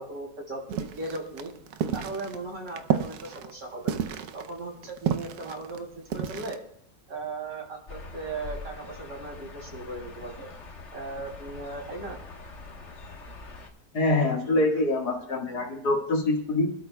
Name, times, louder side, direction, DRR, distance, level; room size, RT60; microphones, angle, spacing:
voice 1, 0.0-1.5 1.9-3.9 4.3-5.9 6.1-6.6 7.1-10.5 10.9-12.2, right 2 dB, 55° right, -1 dB, 3.5 m, -37 dB
sound 1, 0.7-6.5, right 8 dB, 75° right, 1.2 m, -31 dB
sound 2, 7.9-13.7, left 3 dB, 45° left, 1.6 m, -43 dB
voice 2, 13.9-16.7, left 2 dB, 70° left, 1 dB, 2.4 m, -25 dB
26.5 x 12.5 x 2.3 m, 0.66 s
omnidirectional pair, 1.7 m